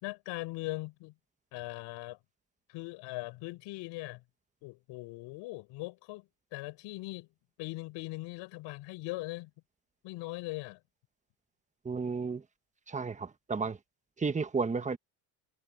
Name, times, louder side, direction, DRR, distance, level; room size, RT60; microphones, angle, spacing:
voice 1, 0.0-1.1 1.5-2.2 2.7-4.2 4.6-7.3 7.6-9.5 10.0-10.8, left 21 dB, 75° left, 4.6 m, -40 dB
voice 2, 11.8-12.4 12.9-13.8 14.2-15.0, right 4 dB, 15° right, 1.3 m, -32 dB
supercardioid pair, 110°, 45 cm